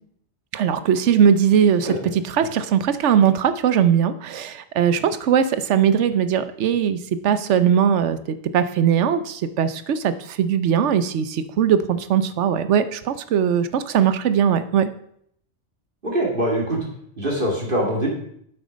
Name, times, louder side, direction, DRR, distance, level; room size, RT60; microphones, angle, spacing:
voice 1, 0.5-14.9, right 8 dB, 75° right, 13 dB, 1.0 m, -20 dB
voice 2, 16.0-16.8 17.2-18.1, right 1 dB, 45° right, -2 dB, 2.4 m, -23 dB
8.7 x 8.0 x 5.2 m, 0.68 s
omnidirectional pair, 1.2 m